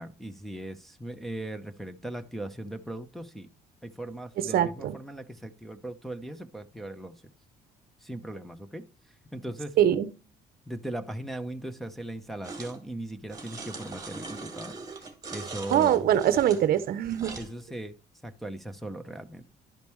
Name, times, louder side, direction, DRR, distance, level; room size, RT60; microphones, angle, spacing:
voice 1, 0.0-3.5 3.8-7.2 8.0-8.8 9.3-9.8 10.7-16.1 17.4-17.9 18.2-19.4, right 1 dB, ahead, 0.8 m, -38 dB
voice 2, 4.4-4.9 9.8-10.1 15.7-17.4, right 10 dB, 60° right, 0.8 m, -23 dB
sound 1, 12.4-12.8 13.3-17.5, right 4 dB, 20° right, 2.0 m, -41 dB
11.5 x 5.2 x 3.2 m
cardioid pair, 110°, 17 cm